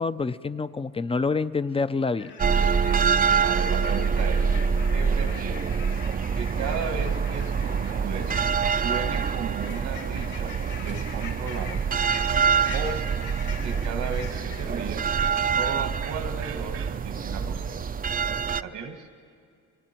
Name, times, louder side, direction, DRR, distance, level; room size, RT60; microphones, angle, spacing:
voice 1, 0.0-2.3, left 4 dB, 20° left, 14 dB, 0.6 m, -27 dB
sound 1, 2.2-14.8, left 5 dB, 80° left, 5.3 m, -43 dB
sound 2, 2.4-18.6, right 6 dB, 30° right, 0.5 m, -26 dB
voice 2, 3.4-4.6 4.9-5.7 6.4-8.4 8.7-11.8 12.7-13.0 13.6-15.0 15.6-17.8 18.6-19.1, right 5 dB, 85° right, 6 dB, 1.9 m, -35 dB
sound 3, 7.2-17.6, right 8 dB, 50° right, 1.0 m, -41 dB
30.0 x 24.5 x 4.5 m, 2.3 s
cardioid pair, 90°, 30 cm